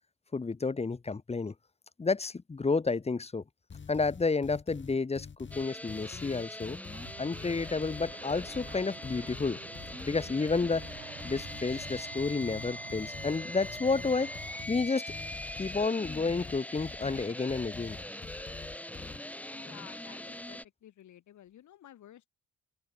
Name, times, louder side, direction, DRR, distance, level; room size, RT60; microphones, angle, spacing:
voice 1, 0.3-1.5 2.0-3.4 3.9-6.8 7.2-9.6 10.0-10.8 11.2-14.3 14.7-15.0 15.6-18.0, left 4 dB, 20° left, 1.1 m, -30 dB
sound 1, 3.7-19.2, left 6 dB, 40° left, 4.2 m, -46 dB
sound 2, 5.5-20.6, left 1 dB, 5° left, 1.4 m, -42 dB
sound 3, 6.9-14.6, right 12 dB, 80° right, 7.5 m, -51 dB
voice 2, 19.5-22.3, left 11 dB, 75° left, 6.8 m, -53 dB
open air
cardioid pair, 90°, 30 cm